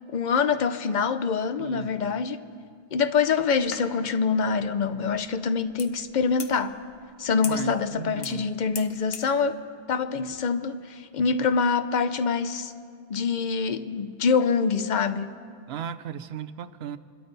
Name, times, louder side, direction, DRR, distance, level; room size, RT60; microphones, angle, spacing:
voice 1, 0.1-2.5 2.9-6.8 7.2-9.6 9.9-12.7 13.1-15.3, left 5 dB, 50° left, 0.7 m, -25 dB
voice 2, 1.6-2.2 7.4-8.5 15.7-17.0, right 9 dB, 80° right, 0.9 m, -36 dB
sound 1, 3.2-9.4, left 5 dB, 75° left, 1.2 m, -43 dB
27.5 x 12.5 x 4.0 m
omnidirectional pair, 1.0 m